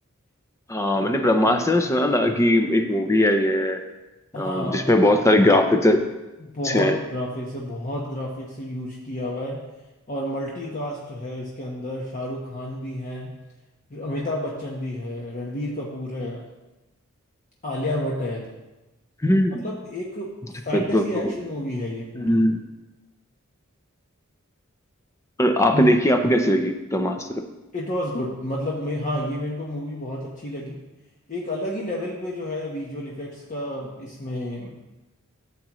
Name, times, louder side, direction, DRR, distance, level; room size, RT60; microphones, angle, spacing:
voice 1, 0.7-3.8 4.3-6.0 6.6-7.0 19.2-19.7 20.7-21.3 22.2-22.6 25.4-27.4, left 1 dB, 15° left, 6 dB, 0.5 m, -20 dB
voice 2, 4.3-4.9 6.4-9.6 10.1-13.3 13.9-16.4 17.6-18.5 19.6-20.3 20.6-22.4 25.7-25.9 27.7-30.7 31.3-34.8, left 1 dB, 40° left, -3 dB, 1.0 m, -30 dB
12.5 x 7.4 x 3.0 m, 1.1 s
head